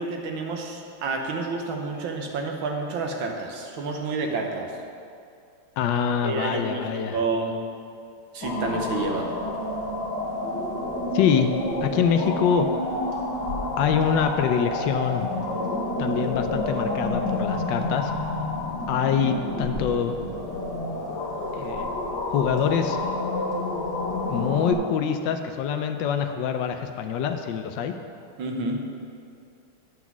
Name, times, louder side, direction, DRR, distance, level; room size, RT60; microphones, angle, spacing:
voice 1, 0.0-4.7 6.2-6.9 7.1-7.6 8.3-9.3 28.4-28.8, right 3 dB, 70° right, 2 dB, 1.7 m, -29 dB
voice 2, 5.8-7.2 11.1-11.5 11.8-12.7 13.8-15.3 16.0-18.1 18.9-20.2 21.5-21.9 22.3-23.0 24.3-27.9, left 7 dB, 75° left, 7 dB, 1.1 m, -25 dB
sound 1, 8.4-24.7, left 2 dB, 55° left, 1.9 m, -29 dB
9.4 x 5.9 x 6.0 m, 2.4 s
omnidirectional pair, 2.4 m